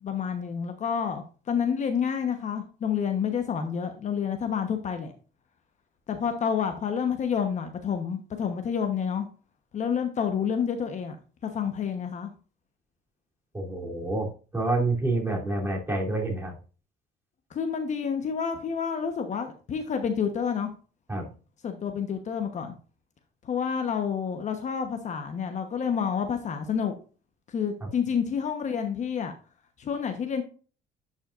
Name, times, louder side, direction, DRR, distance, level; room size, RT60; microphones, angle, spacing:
voice 1, 0.0-5.1 6.1-9.3 9.7-11.2 11.4-12.3 17.5-20.7 21.6-22.7 23.4-26.9 27.5-29.3 29.8-30.4, left 7 dB, 45° left, 6 dB, 1.1 m, -29 dB
voice 2, 13.5-14.3 14.5-16.5 21.1-21.2 27.8-27.9, right 2 dB, 15° right, -2 dB, 3.1 m, -28 dB
11.5 x 5.6 x 2.5 m, 0.36 s
cardioid pair, 110°, 17 cm